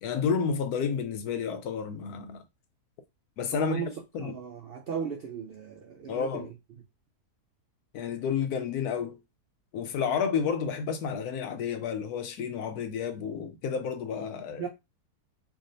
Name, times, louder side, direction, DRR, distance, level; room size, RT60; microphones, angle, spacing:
voice 1, 0.0-2.4 3.4-4.3 6.1-6.5 7.9-9.2 9.7-14.6, left 6 dB, 75° left, 1.1 m, -31 dB
voice 2, 3.5-3.9 4.2-6.5 10.0-10.2 14.6-14.7, right 6 dB, 85° right, 0.5 m, -36 dB
4.8 x 2.5 x 2.6 m
omnidirectional pair, 1.7 m